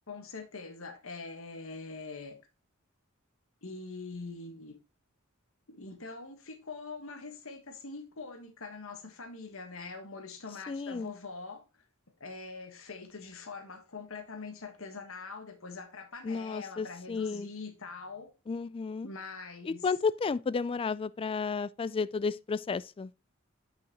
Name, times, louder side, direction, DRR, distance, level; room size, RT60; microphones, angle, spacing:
voice 1, 0.1-2.4 3.6-4.8 5.7-11.8 12.2-18.3 19.0-19.9, left 4 dB, 70° left, 1.4 m, -43 dB
voice 2, 10.7-11.1 16.2-17.5 18.5-19.1 19.7-23.1, left 5 dB, 25° left, 0.3 m, -32 dB
8.7 x 5.8 x 2.9 m
head